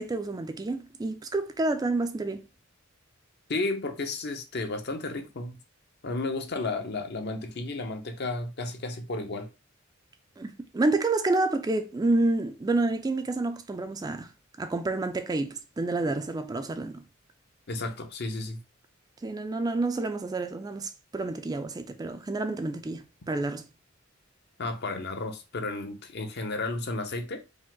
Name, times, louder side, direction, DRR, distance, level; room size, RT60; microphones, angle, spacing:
voice 1, 0.0-2.4 10.4-14.3 14.6-17.0 19.2-23.7, right 2 dB, 20° right, 0.3 m, -29 dB
voice 2, 3.5-5.6 6.0-9.5 17.7-18.6 24.6-27.4, left 2 dB, 55° left, 0.7 m, -33 dB
5.0 x 2.0 x 3.7 m
head